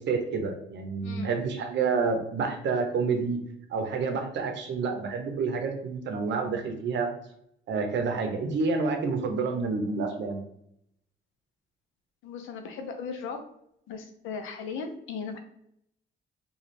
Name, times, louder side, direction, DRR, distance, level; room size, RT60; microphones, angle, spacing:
voice 1, 0.0-3.4 3.7-7.1 7.7-10.4, right 4 dB, 65° right, 5 dB, 0.7 m, -28 dB
voice 2, 1.0-1.3 12.2-13.4 13.9-15.4, left 5 dB, 85° left, 6 dB, 0.5 m, -37 dB
2.5 x 2.3 x 3.1 m, 0.73 s
cardioid pair, 90°, 20 cm